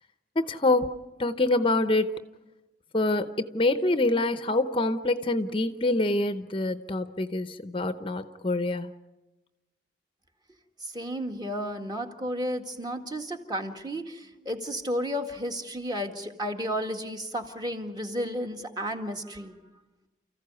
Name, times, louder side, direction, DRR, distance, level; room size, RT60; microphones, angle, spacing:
voice 1, 0.4-2.2 2.9-8.9, left 2 dB, 30° left, 10 dB, 0.8 m, -26 dB
voice 2, 10.8-19.6, equal, 25° right, 4 dB, 1.9 m, -33 dB
29.5 x 15.0 x 9.7 m, 1.1 s
head